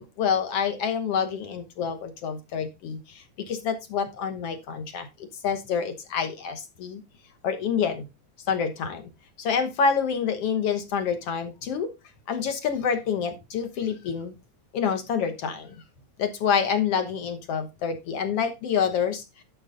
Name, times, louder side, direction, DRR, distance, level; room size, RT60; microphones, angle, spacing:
voice 1, 0.0-5.1 5.4-7.0 7.4-8.1 8.5-9.1 9.4-11.9 12.3-14.3 14.7-15.7 16.2-19.2, left 6 dB, 60° left, 1.9 m, -27 dB
11.0 x 6.3 x 3.7 m
omnidirectional pair, 3.5 m